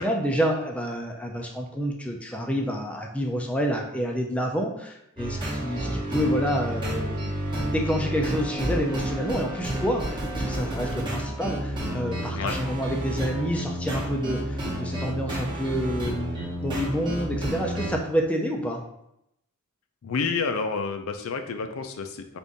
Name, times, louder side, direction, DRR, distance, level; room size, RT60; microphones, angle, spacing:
voice 1, 0.0-7.2 7.7-18.8, equal, 5° left, 0 dB, 0.4 m, -28 dB
sound 1, 5.2-18.0, right 1 dB, 20° right, 0.9 m, -30 dB
voice 2, 20.0-22.4, left 5 dB, 70° left, 7 dB, 0.4 m, -29 dB
3.6 x 2.5 x 3.9 m, 0.80 s
head